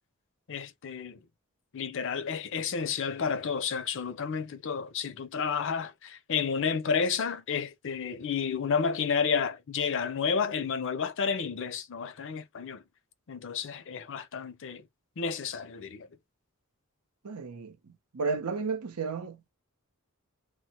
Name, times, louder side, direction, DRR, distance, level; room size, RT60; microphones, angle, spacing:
voice 1, 0.5-1.2 1.7-12.8 13.3-14.8 15.2-16.1, left 6 dB, 60° left, 0.5 m, -31 dB
voice 2, 17.2-17.8 18.1-19.4, right 4 dB, 90° right, 0.7 m, -32 dB
3.1 x 2.0 x 2.9 m
head